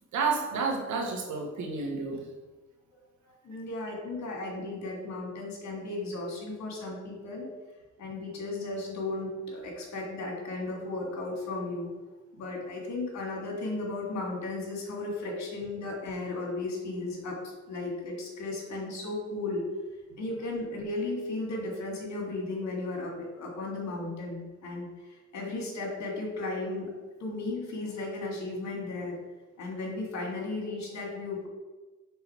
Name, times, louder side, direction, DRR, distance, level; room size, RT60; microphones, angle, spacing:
voice 1, 0.1-2.2, right 4 dB, 70° right, 1 dB, 1.4 m, -30 dB
voice 2, 3.4-7.5 8.0-11.9 12.4-19.7 20.2-24.9 25.3-26.9 27.2-29.2 29.6-31.5, left 2 dB, 65° left, 0 dB, 1.9 m, -35 dB
5.6 x 3.8 x 4.6 m, 1.2 s
cardioid pair, 90°, 30 cm